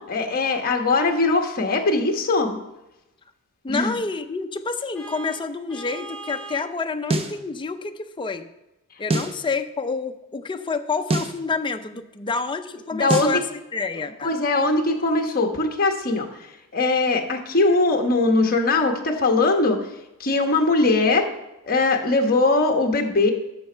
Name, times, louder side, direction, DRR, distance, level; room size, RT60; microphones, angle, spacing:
voice 1, 0.0-2.6 3.7-3.9 12.9-13.4 14.2-16.3 16.7-19.8 20.2-21.3 21.6-23.3, left 3 dB, 45° left, 3 dB, 1.2 m, -21 dB
voice 2, 3.6-8.5 9.0-14.3, left 4 dB, 20° left, 7 dB, 0.5 m, -28 dB
Vehicle horn car horn honking, 4.9-6.7, right 3 dB, 5° left, 2.5 m, -39 dB
sound 1, 7.1-7.4 9.1-9.4 11.1-11.4 13.1-13.4, right 2 dB, 25° right, 0.7 m, -24 dB
11.0 x 6.8 x 4.5 m, 0.95 s
head